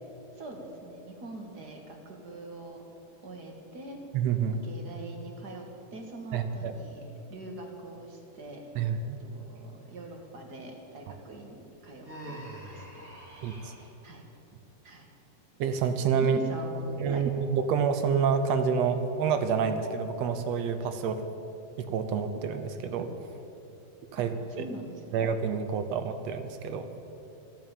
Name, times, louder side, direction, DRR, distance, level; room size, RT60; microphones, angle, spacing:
voice 1, 0.4-2.8 3.2-4.0 4.5-7.0 7.3-8.6 9.2-13.1 14.0-14.3 14.8-15.1 16.2-17.2 24.2-24.3 24.5-25.2, right 2 dB, 40° right, 2 dB, 1.7 m, -43 dB
voice 2, 4.1-4.6 6.3-6.7 8.7-9.2 13.4-13.7 15.6-16.4 17.0-21.2 21.8-23.1 24.1-24.7 25.1-26.9, right 6 dB, 70° right, 9 dB, 1.7 m, -28 dB
Human voice, 12.0-13.9, right 1 dB, 20° right, 1.7 m, -44 dB
14.5 x 10.5 x 9.0 m, 2.9 s
omnidirectional pair, 3.7 m